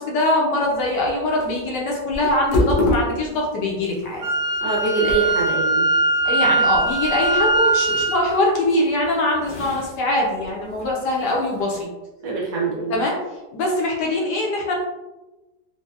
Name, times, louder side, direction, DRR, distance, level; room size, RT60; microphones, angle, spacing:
voice 1, 0.0-4.2 6.2-11.9 12.9-13.2 13.5-14.7, left 1 dB, 70° left, -2 dB, 1.3 m, -22 dB
sound 1, 0.6-11.8, left 2 dB, 90° left, 0.5 m, -30 dB
Wind instrument woodwind instrument, 4.2-8.2, right 2 dB, 90° right, 1.3 m, -20 dB
voice 2, 4.6-5.9 12.2-13.0, right 4 dB, 65° right, -3 dB, 1.1 m, -24 dB
4.0 x 2.2 x 2.4 m, 1.1 s
omnidirectional pair, 2.0 m